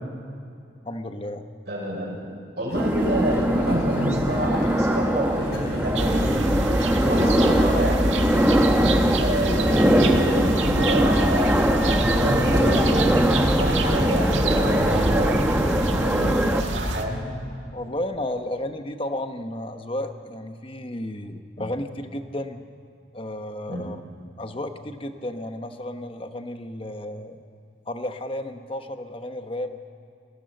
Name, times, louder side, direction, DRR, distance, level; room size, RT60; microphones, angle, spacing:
voice 1, 0.8-1.5 7.2-7.6 17.7-22.6 23.1-24.0 24.4-27.4 27.9-29.8, left 1 dB, 30° left, 7 dB, 1.0 m, -33 dB
voice 2, 1.7-2.3 2.6-6.5 7.0-8.4 9.2-13.1 13.4-17.2 21.6-21.7 23.7-23.8, equal, 60° right, -2 dB, 6.1 m, -28 dB
sound 1, 2.7-15.3, equal, 60° left, 4.3 m, -39 dB
sound 2, 2.7-16.6, equal, 10° right, 1.0 m, -21 dB
sound 3, 6.0-17.1, right 2 dB, 85° right, 1.7 m, -27 dB
20.0 x 16.5 x 7.8 m, 2.4 s
head